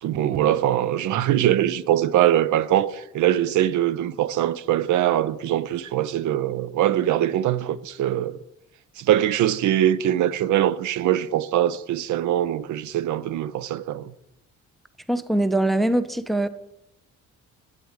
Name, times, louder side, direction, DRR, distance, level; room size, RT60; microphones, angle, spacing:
voice 1, 0.0-8.4 9.0-14.1, right 12 dB, 75° right, 0.5 m, -22 dB
voice 2, 15.1-16.5, right 1 dB, ahead, 0.4 m, -22 dB
8.9 x 8.1 x 4.7 m
cardioid pair, 90°, 30 cm